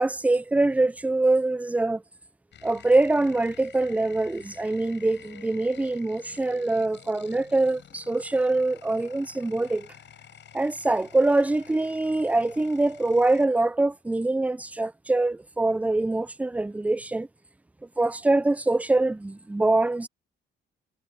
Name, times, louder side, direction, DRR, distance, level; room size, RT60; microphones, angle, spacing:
voice 1, 0.0-2.0 2.6-9.9 10.5-17.3 18.0-20.1, right 2 dB, 5° right, 0.5 m, -24 dB
sound 1, 2.5-13.5, left 9 dB, 65° left, 7.5 m, -50 dB
sound 2, 4.3-9.3 9.7-10.0, left 14 dB, 85° left, 4.5 m, -56 dB
cardioid pair, 90°, 20 cm